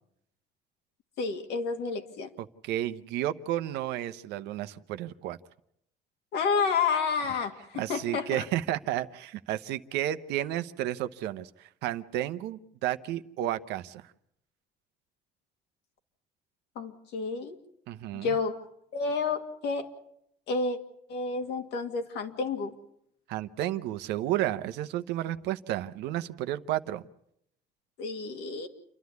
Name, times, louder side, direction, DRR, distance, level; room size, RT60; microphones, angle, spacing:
voice 1, 1.2-2.3 6.3-8.4 16.8-17.6 18.1-18.6 18.9-19.9 20.5-20.8 21.1-22.7 28.0-28.7, left 5 dB, 80° left, 4 dB, 2.4 m, -30 dB
voice 2, 2.4-5.4 7.7-14.1 17.9-18.4 23.3-27.0, right 13 dB, 90° right, 11 dB, 0.9 m, -32 dB
29.0 x 11.5 x 9.5 m, 0.76 s
cardioid pair, 110°, 17 cm